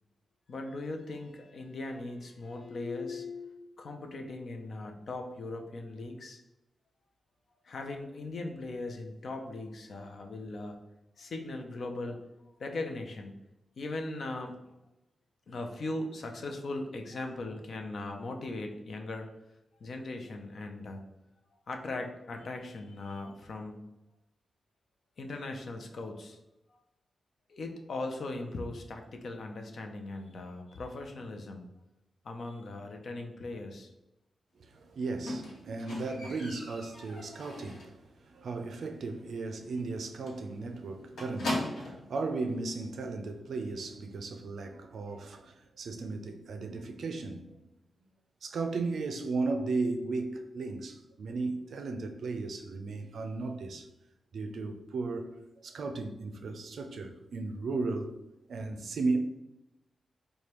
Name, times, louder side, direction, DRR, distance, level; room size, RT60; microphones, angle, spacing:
voice 1, 0.5-6.4 7.6-10.8 11.2-12.2 12.6-13.4 13.8-14.7 15.5-19.3 19.8-21.0 21.7-23.9 25.2-26.4 26.7-26.8 27.5-31.7 32.2-33.9, left 2 dB, 55° left, 0.5 m, -39 dB
voice 2, 34.6-47.6 48.4-53.9 54.3-58.2 58.5-59.2, right 3 dB, 70° right, 0.4 m, -35 dB
Squeak, 35.3-38.0 38.4-38.8 39.0-39.1 39.5-39.6 39.9-40.0 40.3-42.1 42.9-43.0, left 1 dB, 90° left, 0.9 m, -38 dB
4.8 x 2.2 x 2.9 m
wide cardioid pair, 155°, 0 cm